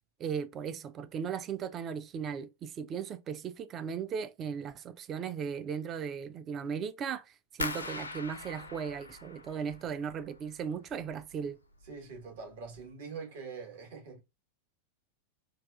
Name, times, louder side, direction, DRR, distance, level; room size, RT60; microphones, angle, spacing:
voice 1, 0.2-11.6, right 7 dB, 30° right, 0.3 m, -37 dB
sound 1, 7.6-10.5 10.8-11.5 11.8-12.2 12.6-12.8, left 3 dB, 80° left, 0.4 m, -41 dB
voice 2, 11.8-14.2, right 5 dB, 55° right, 1.1 m, -44 dB
3.9 x 2.3 x 2.3 m
figure-of-eight pair, 90°, 0 cm